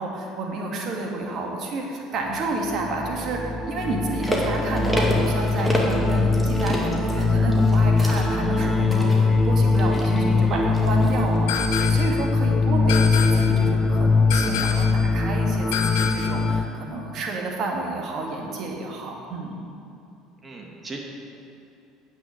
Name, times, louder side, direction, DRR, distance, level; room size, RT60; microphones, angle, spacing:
voice 1, 0.0-19.6, right 2 dB, 55° right, 0 dB, 2.0 m, -30 dB
sound 1, 2.5-16.6, left 3 dB, 20° left, 0.7 m, -21 dB
sound 2, 4.0-11.4 11.8-11.9, equal, ahead, 2.2 m, -30 dB
voice 2, 10.4-10.7 20.4-21.0, right 3 dB, 30° right, 0 dB, 2.2 m, -36 dB
sound 3, 11.5-12.2 12.9-13.6 14.3-15.0 15.7-16.4, left 7 dB, 80° left, 0.7 m, -28 dB
9.4 x 6.1 x 8.0 m, 2.7 s
supercardioid pair, 80°, 0 cm